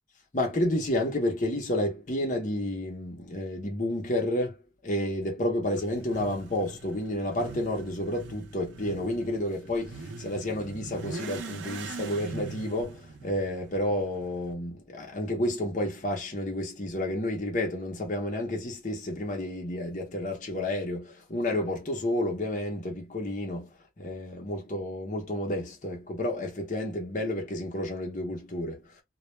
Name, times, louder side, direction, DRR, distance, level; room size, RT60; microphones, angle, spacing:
voice 1, 0.3-29.0, left 1 dB, 40° left, 0.7 m, -31 dB
Motorcycle / Accelerating revving vroom, 5.6-14.5, right 4 dB, 90° right, 0.6 m, -42 dB
2.3 x 2.1 x 3.0 m
head